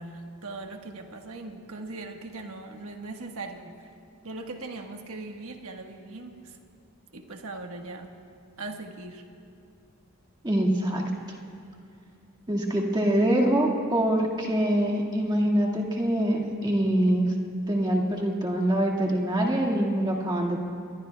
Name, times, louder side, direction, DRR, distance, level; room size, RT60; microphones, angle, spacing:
voice 1, 0.0-3.9 4.2-6.6 7.1-8.2 8.6-9.2, right 2 dB, 70° right, 3 dB, 1.3 m, -39 dB
voice 2, 10.4-11.1 12.5-17.3 17.7-20.6, right 1 dB, 20° right, -1 dB, 1.8 m, -24 dB
28.5 x 21.5 x 2.3 m, 2.6 s
head